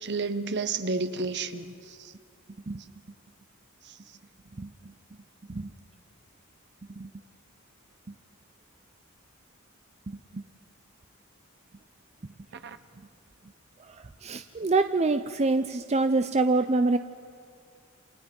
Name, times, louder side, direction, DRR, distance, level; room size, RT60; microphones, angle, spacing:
voice 1, 0.0-2.1 12.6-12.8, right 3 dB, 55° right, 11 dB, 1.1 m, -31 dB
voice 2, 4.6-4.9 5.5-5.7 7.0-7.1 8.1-8.2 10.1-10.4 13.8-17.0, right 3 dB, 30° right, 9 dB, 0.6 m, -26 dB
28.5 x 28.0 x 5.4 m, 2.4 s
head